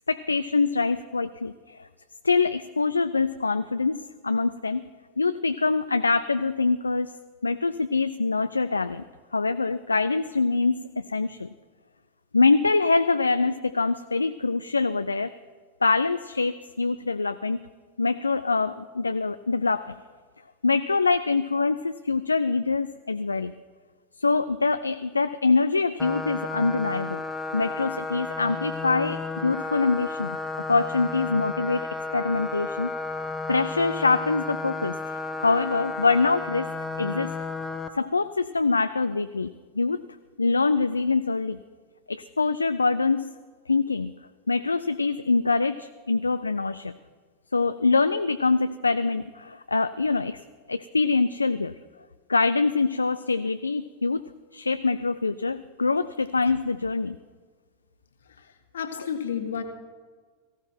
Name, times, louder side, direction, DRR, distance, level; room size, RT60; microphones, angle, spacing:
voice 1, 0.1-1.9 2.2-4.0 4.2-4.8 5.2-7.1 7.4-9.0 9.3-11.5 12.3-15.3 15.8-17.6 18.0-20.0 20.6-23.5 24.2-27.2 27.5-30.4 30.7-31.9 32.1-35.0 35.4-36.7 37.0-37.3 37.9-40.0 40.4-41.6 42.1-43.3 43.7-44.1 44.5-46.9 47.5-50.4 50.7-51.8 52.3-54.2 54.5-57.2, left 4 dB, 85° left, 11 dB, 0.4 m, -24 dB
sound 1, 26.0-37.9, left 3 dB, 10° left, 1.3 m, -33 dB
voice 2, 58.7-59.6, left 7 dB, 70° left, 6 dB, 1.7 m, -30 dB
18.0 x 15.5 x 4.5 m, 1.5 s
figure-of-eight pair, 90°, 0 cm